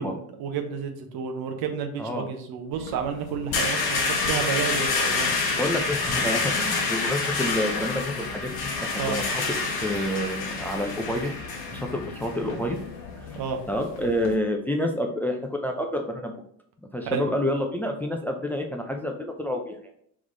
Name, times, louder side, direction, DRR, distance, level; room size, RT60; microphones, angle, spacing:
voice 1, 0.0-5.3 9.0-9.2 13.3-13.6 17.0-17.3, right 6 dB, 60° right, 5 dB, 0.9 m, -31 dB
sound 1, 2.7-14.3, left 4 dB, 60° left, 1.0 m, -28 dB
voice 2, 5.5-9.4 9.8-11.3 11.7-12.8 13.2-13.3 13.7-16.3 16.9-19.8, left 1 dB, 5° left, 3 dB, 0.5 m, -28 dB
3.6 x 3.1 x 3.9 m, 0.66 s
hypercardioid pair, 65°, 42 cm